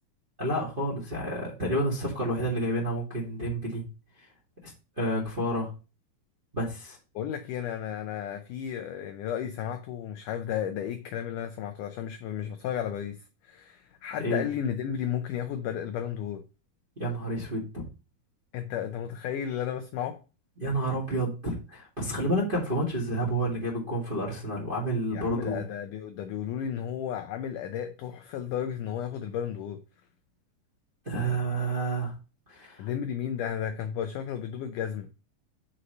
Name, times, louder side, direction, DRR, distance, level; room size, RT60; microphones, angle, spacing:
voice 1, 0.4-3.8 4.6-4.7 5.0-5.7 6.5-7.0 14.2-14.4 16.9-17.8 20.6-25.6 31.0-32.1 32.5-32.9, right 1 dB, 20° right, 1.4 m, -29 dB
voice 2, 7.2-13.2 13.4-16.4 18.5-20.2 25.1-29.8 32.8-35.1, left 9 dB, 85° left, 1.8 m, -33 dB
6.3 x 4.2 x 6.4 m
omnidirectional pair, 4.4 m